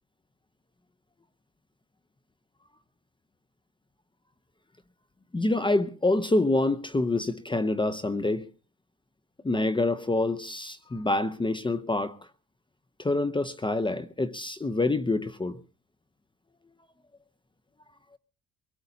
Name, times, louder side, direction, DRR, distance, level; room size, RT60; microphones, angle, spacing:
voice 1, 5.3-8.5 9.4-12.2 13.0-15.6, left 2 dB, 15° left, 0.7 m, -26 dB
24.0 x 18.0 x 2.8 m
cardioid pair, 90°, 30 cm